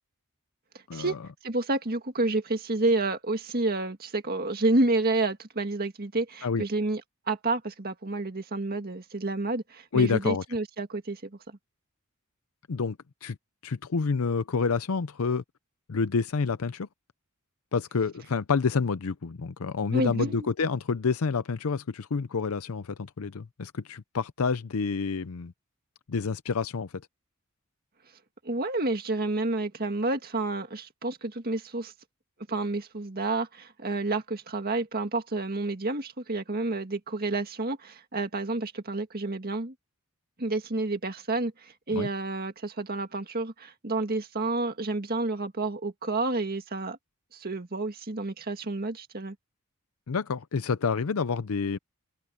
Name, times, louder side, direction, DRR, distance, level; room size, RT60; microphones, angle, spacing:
voice 1, 1.4-7.0 7.3-11.2 19.9-20.4 28.4-31.9 32.5-39.7 40.4-47.0 47.3-49.4, right 2 dB, 45° right, 1.9 m, -29 dB
voice 2, 9.9-10.4 12.7-13.0 13.2-13.4 13.6-15.4 15.9-16.9 17.7-25.5 26.1-26.9 41.9-42.1 50.1-51.8, left 5 dB, 70° left, 0.6 m, -28 dB
head